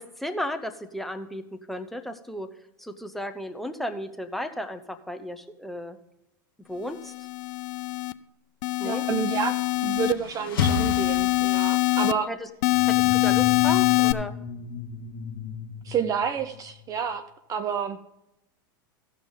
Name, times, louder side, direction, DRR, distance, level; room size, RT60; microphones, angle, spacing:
voice 1, 0.0-2.5 2.8-6.0 6.7-7.1 8.8-9.0 12.3-12.5 12.9-14.3, left 1 dB, ahead, 7 dB, 0.9 m, -34 dB
sound 1, 7.0-8.1 8.6-10.1 10.6-12.1 12.6-14.1, left 20 dB, 60° left, 0.5 m, -23 dB
voice 2, 8.8-12.3 15.8-17.2 17.5-18.0, right 7 dB, 30° right, 12 dB, 0.6 m, -29 dB
sound 2, 9.6-12.0, left 6 dB, 85° left, 1.3 m, -31 dB
sound 3, 12.7-16.8, left 7 dB, 30° left, 1.4 m, -36 dB
16.0 x 6.1 x 3.8 m, 0.86 s
hypercardioid pair, 110°, 12 cm